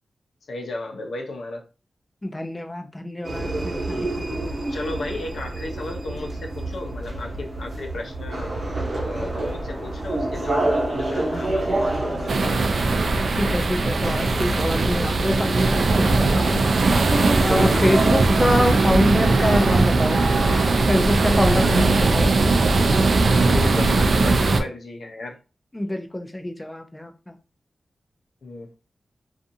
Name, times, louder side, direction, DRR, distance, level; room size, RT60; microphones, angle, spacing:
voice 1, 0.5-1.6 3.9-4.1 4.7-8.5 9.0-13.0 13.4-13.5 14.9-15.1 16.0-16.5 17.7-18.0 23.4-25.4 28.4-28.7, left 2 dB, 80° left, 0.6 m, -34 dB
voice 2, 2.2-4.5 13.3-16.6 17.4-20.2 20.8-22.3 25.7-27.3, left 1 dB, 15° left, 0.3 m, -25 dB
sound 1, 3.2-21.7, right 2 dB, 50° right, 0.9 m, -28 dB
sound 2, 12.3-24.6, right 3 dB, 65° right, 0.3 m, -19 dB
2.5 x 2.4 x 2.6 m
wide cardioid pair, 110°, 0 cm